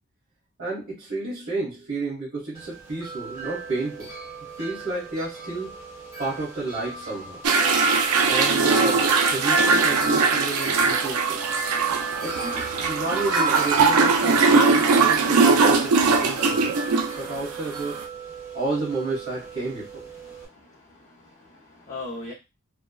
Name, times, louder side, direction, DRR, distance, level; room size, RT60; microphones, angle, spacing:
voice 1, 0.6-4.1 4.6-5.8 6.2-7.4 8.2-11.4 12.2-16.8 17.1-18.0 18.5-20.0, right 2 dB, 55° right, -10 dB, 1.5 m, -31 dB
Wind chime, 2.6-20.5, right 3 dB, 15° right, 1.1 m, -33 dB
sound 1, 7.4-18.0, right 4 dB, 80° right, 0.4 m, -20 dB
voice 2, 20.3-22.3, left 2 dB, 35° left, -3 dB, 0.6 m, -40 dB
3.4 x 2.1 x 2.2 m, 0.26 s
head